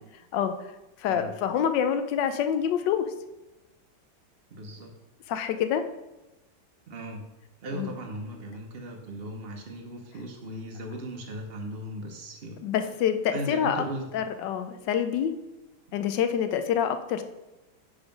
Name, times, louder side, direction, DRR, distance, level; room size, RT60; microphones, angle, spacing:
voice 1, 1.0-3.1 5.3-5.8 7.7-8.0 12.6-13.8 14.1-15.3 15.9-17.2, left 8 dB, 70° left, 9 dB, 1.1 m, -26 dB
voice 2, 4.5-4.9 6.9-7.3 7.6-12.6 13.3-14.1, right 1 dB, 60° right, 2 dB, 0.6 m, -37 dB
5.6 x 4.9 x 5.1 m, 1.0 s
omnidirectional pair, 2.2 m